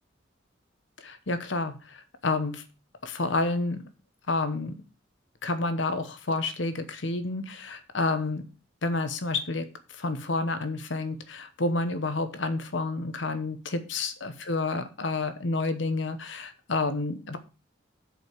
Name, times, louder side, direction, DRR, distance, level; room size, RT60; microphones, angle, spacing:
voice 1, 1.0-2.6 3.0-3.8 4.3-4.7 5.4-8.4 8.8-9.7 9.9-17.4, left 3 dB, 75° left, 10 dB, 1.1 m, -29 dB
7.7 x 5.2 x 6.7 m, 0.32 s
head